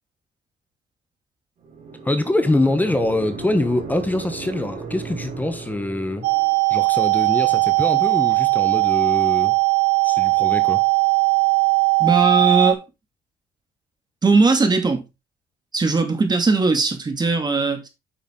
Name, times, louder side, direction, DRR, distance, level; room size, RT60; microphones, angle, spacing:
sound 1, 1.6-6.6, right 4 dB, 50° right, 4.5 m, -35 dB
voice 1, 2.0-6.3 6.7-9.5 10.0-10.8, left 1 dB, 10° left, 1.1 m, -24 dB
sound 2, 6.2-12.7, right 32 dB, 80° right, 0.9 m, -18 dB
voice 2, 12.0-12.8 14.2-15.0 15.7-17.9, right 3 dB, 25° right, 2.4 m, -19 dB
8.7 x 5.7 x 3.8 m
cardioid pair, 110°, 17 cm